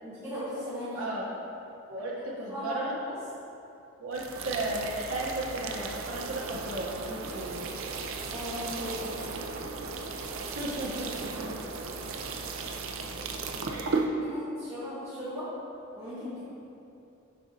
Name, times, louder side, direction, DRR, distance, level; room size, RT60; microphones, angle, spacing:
voice 1, 0.0-1.2 2.1-3.2 8.3-9.1 13.7-13.9 14.2-15.5 16.0-16.5, equal, 15° right, -12 dB, 1.0 m, -37 dB
voice 2, 0.9-1.3 1.9-2.9 4.0-7.6 10.5-11.5 13.6-13.9, right 1 dB, 90° right, -4 dB, 0.8 m, -35 dB
sound 1, 4.1-14.1, right 4 dB, 70° right, 0.5 m, -36 dB
6.7 x 6.1 x 2.6 m, 2.7 s
head